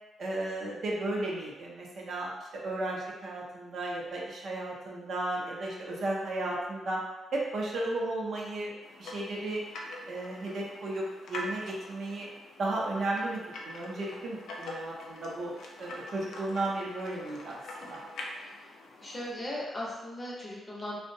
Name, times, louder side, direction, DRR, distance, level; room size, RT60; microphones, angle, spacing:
voice 1, 0.2-7.0 7.3-8.7 9.0-9.6 10.1-12.3 12.6-18.0, right 2 dB, 55° right, -3 dB, 0.5 m, -34 dB
sound 1, 8.8-19.3, left 1 dB, 75° left, 0.4 m, -44 dB
voice 2, 19.0-21.0, left 1 dB, 15° left, -5 dB, 0.5 m, -38 dB
2.6 x 2.0 x 2.6 m, 1.1 s
wide cardioid pair, 160°, 0 cm